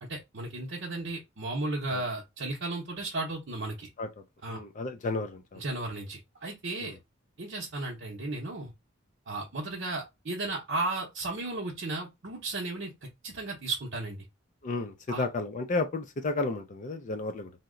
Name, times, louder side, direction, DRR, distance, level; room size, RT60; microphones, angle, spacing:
voice 1, 0.0-3.9 4.4-4.6 5.6-7.0 7.4-8.7 9.3-14.2 15.1-15.2, right 2 dB, 60° right, 0.7 m, -34 dB
voice 2, 4.5-5.6 6.8-7.0 14.6-17.5, left 3 dB, 40° left, 0.4 m, -32 dB
2.8 x 2.1 x 3.7 m
head